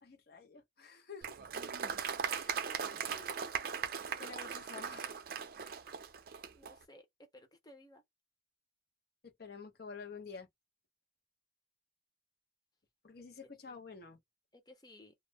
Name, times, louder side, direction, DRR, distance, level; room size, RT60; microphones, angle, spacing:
voice 1, 0.0-1.4 2.3-3.1 4.2-5.2 9.2-10.5 13.0-14.2, left 5 dB, 55° left, 0.8 m, -50 dB
Applause, 1.2-6.7, right 7 dB, 55° right, 0.5 m, -39 dB
voice 2, 3.1-3.6 6.5-8.0 13.7-13.8 14.5-15.1, left 2 dB, 20° left, 0.7 m, -58 dB
2.4 x 2.0 x 3.4 m
head